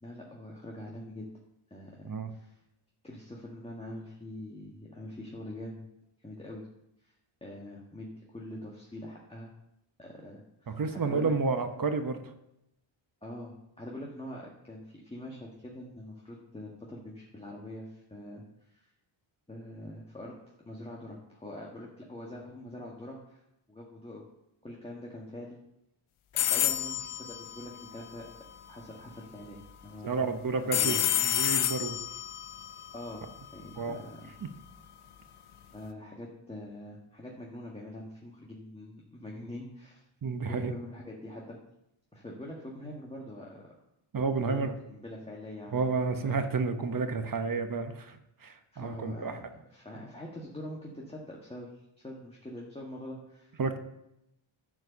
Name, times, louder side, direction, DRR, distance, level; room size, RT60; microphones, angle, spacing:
voice 1, 0.0-1.3 1.7-2.6 3.0-5.8 6.2-6.7 7.0-7.1 7.4-9.5 10.0-11.3 13.2-18.9 19.5-20.3 20.6-23.4 23.7-24.2 24.6-25.6 26.3-28.3 28.7-30.3 30.7-31.0 32.9-34.3 35.7-40.0 40.4-41.6 42.1-43.6 44.4-44.6 44.9-45.8 46.0-46.4 48.7-53.6, left 1 dB, 10° left, -3 dB, 1.6 m, -44 dB
voice 2, 10.7-12.2 30.0-32.0 33.8-34.0 40.2-40.7 44.1-44.7 45.7-49.4 53.6-53.8, right 4 dB, 45° right, 8 dB, 1.0 m, -31 dB
sound 1, 26.4-28.4 30.7-33.8, left 12 dB, 80° left, 0.8 m, -30 dB
11.0 x 4.6 x 6.8 m, 0.85 s
wide cardioid pair, 95°, 49 cm